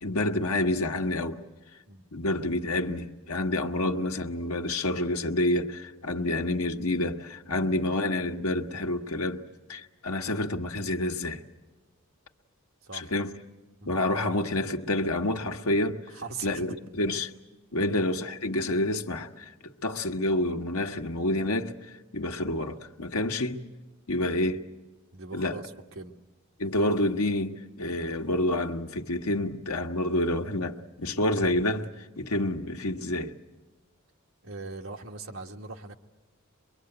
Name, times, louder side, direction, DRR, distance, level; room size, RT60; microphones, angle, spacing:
voice 1, 0.0-1.4 2.1-9.4 9.7-11.4 12.9-13.3 13.8-16.0 16.4-17.3 17.7-21.7 22.1-23.7 24.1-24.6 25.3-25.6 26.6-31.9 32.2-33.3, left 1 dB, 90° left, 1.3 m, -28 dB
voice 2, 12.8-13.1 13.8-13.9 16.1-16.8 17.8-18.0 25.1-26.1 34.4-36.0, right 3 dB, 65° right, 1.4 m, -40 dB
23.5 x 23.0 x 7.9 m
head